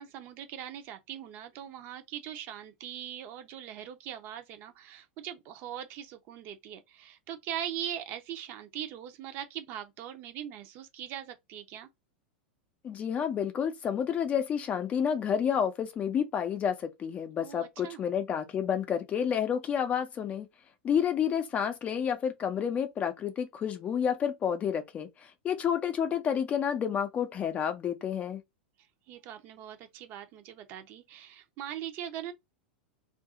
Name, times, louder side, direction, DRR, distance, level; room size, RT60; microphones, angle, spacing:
voice 1, 0.0-11.9 17.4-18.0 29.1-32.3, right 10 dB, 40° right, 0.7 m, -41 dB
voice 2, 12.8-20.5 20.8-28.4, left 8 dB, 25° left, 0.6 m, -30 dB
2.7 x 2.6 x 3.6 m
figure-of-eight pair, 90°, 6 cm